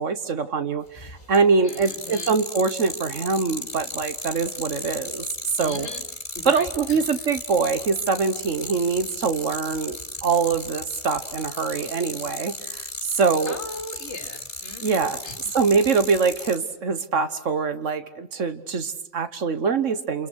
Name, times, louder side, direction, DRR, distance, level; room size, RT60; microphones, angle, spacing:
voice 1, 0.0-5.3 5.6-5.9 6.4-13.6 14.8-15.2 15.5-20.3, right 5 dB, 70° right, 11 dB, 1.7 m, -24 dB
sound 1, 1.0-1.4 1.7-16.6, left 1 dB, 35° left, 4.8 m, -34 dB
voice 2, 1.6-2.4 5.6-6.1 6.3-7.3 13.5-15.6, left 2 dB, 60° left, 5 dB, 2.9 m, -39 dB
29.0 x 28.5 x 6.4 m, 0.81 s
omnidirectional pair, 1.3 m